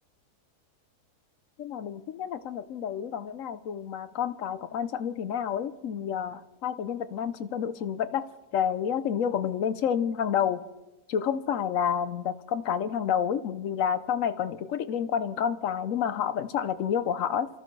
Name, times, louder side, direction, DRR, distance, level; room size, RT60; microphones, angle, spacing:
voice 1, 1.6-8.2 8.5-10.6 11.1-17.5, left 8 dB, 65° left, 12 dB, 1.0 m, -29 dB
30.0 x 14.0 x 3.2 m, 1.1 s
omnidirectional pair, 1.6 m